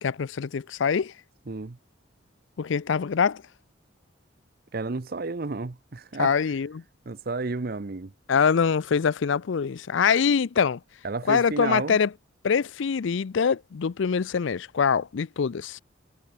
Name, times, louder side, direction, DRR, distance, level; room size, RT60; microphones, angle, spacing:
voice 1, 0.0-1.1 2.6-3.4 6.2-6.7 8.3-10.8 11.3-12.1 12.4-15.8, left 6 dB, 70° left, 0.4 m, -24 dB
voice 2, 1.5-1.8 4.7-6.4 7.1-8.1 11.0-12.0, right 3 dB, 45° right, 0.7 m, -31 dB
head